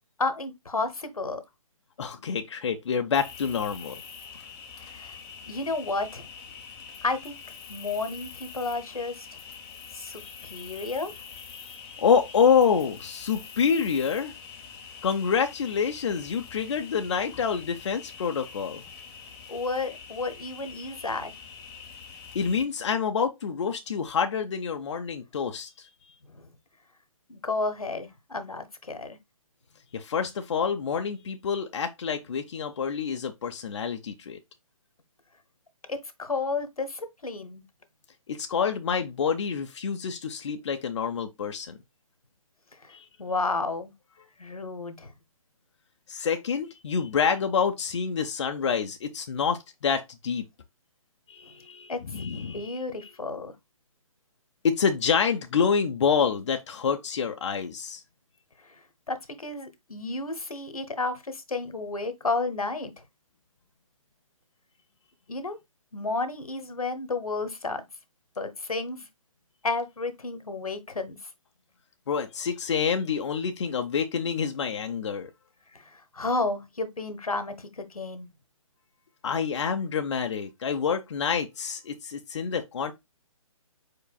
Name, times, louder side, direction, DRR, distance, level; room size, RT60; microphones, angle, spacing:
voice 1, 0.2-1.4 4.8-5.2 5.5-6.3 7.0-7.4 7.7-9.3 9.9-11.1 19.5-21.3 26.3-26.5 27.3-29.2 35.9-37.6 42.8-43.9 44.4-45.1 51.9-52.0 52.5-53.5 58.6-62.9 65.3-65.6 65.9-67.8 68.4-69.1 69.6-71.3 75.7-78.3, left 3 dB, 85° left, 1.1 m, -32 dB
voice 2, 2.0-4.0 10.2-10.7 11.5-14.3 15.0-18.8 22.3-25.9 29.9-34.4 38.3-41.8 42.9-43.1 46.1-50.4 51.3-52.8 54.6-58.0 72.1-75.3 79.2-82.9, left 6 dB, 55° left, 0.6 m, -27 dB
Cricket, 3.1-22.6, left 6 dB, 15° left, 0.7 m, -45 dB
4.7 x 4.6 x 2.2 m
figure-of-eight pair, 145°, 18 cm